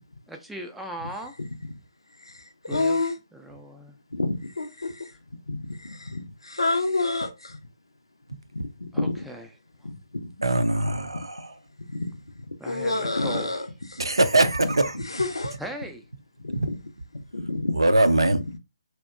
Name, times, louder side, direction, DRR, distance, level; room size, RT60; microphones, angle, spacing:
voice 1, 0.3-1.3 2.7-3.0 3.3-4.0 8.9-9.5 12.6-13.5 15.6-16.0, right 1 dB, ahead, 0.4 m, -38 dB
voice 2, 2.2-3.1 4.1-5.1 5.5-7.6 8.5-9.2 9.8-10.3 11.9-14.0 14.9-15.6 16.4-16.6 17.3-17.8, left 2 dB, 80° left, 0.5 m, -29 dB
voice 3, 10.4-11.5 14.0-15.0 17.7-18.4, right 2 dB, 80° right, 0.4 m, -21 dB
2.7 x 2.1 x 2.4 m
figure-of-eight pair, 140°, 3 cm